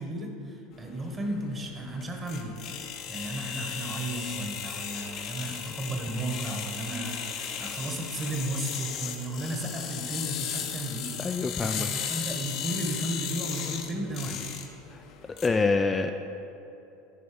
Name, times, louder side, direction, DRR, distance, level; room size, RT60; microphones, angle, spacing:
voice 1, 0.0-2.6 3.1-11.1 11.6-14.4, right 1 dB, 25° right, 2 dB, 1.2 m, -34 dB
sound 1, 0.8-15.5, left 8 dB, 55° left, 0.8 m, -36 dB
voice 2, 11.2-11.9 14.9-15.0 15.4-16.1, left 4 dB, 20° left, 6 dB, 0.3 m, -26 dB
10.5 x 3.9 x 5.1 m, 3.0 s
supercardioid pair, 105°, 0 cm